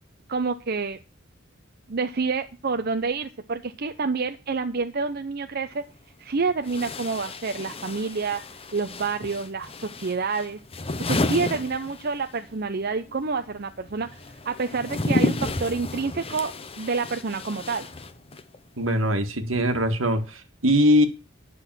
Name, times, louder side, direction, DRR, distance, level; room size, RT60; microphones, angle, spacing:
voice 1, 0.3-1.0 1.9-5.8 6.2-8.4 8.7-10.6 11.0-14.1 14.4-16.5 16.8-17.9, right 4 dB, 50° right, 8 dB, 0.7 m, -28 dB
sound 1, 5.7-5.8 6.6-12.5 12.7-18.6, left 2 dB, 30° left, 0.9 m, -31 dB
voice 2, 18.8-21.1, equal, 80° right, 8 dB, 1.7 m, -21 dB
10.0 x 6.3 x 7.4 m, 0.31 s
head